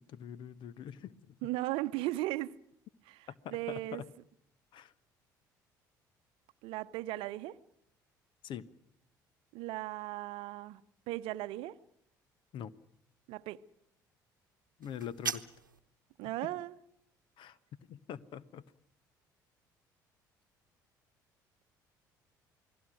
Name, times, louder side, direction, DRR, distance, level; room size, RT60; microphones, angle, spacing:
voice 1, 0.0-1.5 3.3-4.1 4.7-4.9 8.4-8.7 12.5-12.7 14.8-15.5 16.4-16.5 17.4-17.6 17.9-18.6, left 9 dB, 50° left, 1.1 m, -44 dB
voice 2, 1.4-2.6 3.1-4.0 6.6-7.6 9.5-10.8 11.1-11.8 13.3-13.6 16.2-16.7, right 17 dB, 60° right, 0.8 m, -37 dB
sound 1, 14.8-15.8, right 6 dB, 85° right, 0.9 m, -39 dB
28.5 x 20.0 x 6.2 m
figure-of-eight pair, 55°, 10 cm